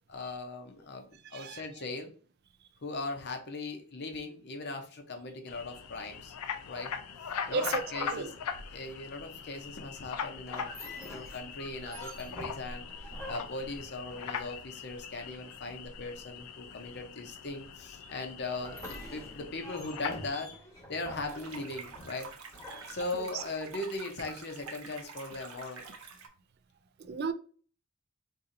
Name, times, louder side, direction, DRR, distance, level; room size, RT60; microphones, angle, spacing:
voice 1, 0.1-2.1 2.8-6.3 6.7-6.9 7.5-8.3 8.7-10.7 11.0-12.8 13.3-20.5 20.9-22.3 22.9-25.8, left 2 dB, 50° left, 0.7 m, -39 dB
voice 2, 1.2-1.7 7.5-8.3 18.0-18.1 22.7-23.4 27.0-27.3, right 5 dB, 45° right, 0.3 m, -36 dB
sound 1, 5.5-20.3, left 6 dB, 85° left, 0.4 m, -41 dB
sound 2, 10.5-14.8 18.5-23.6, left 1 dB, 15° left, 1.0 m, -47 dB
sound 3, 21.3-26.3, right 5 dB, 75° right, 0.8 m, -47 dB
4.1 x 2.7 x 2.5 m
head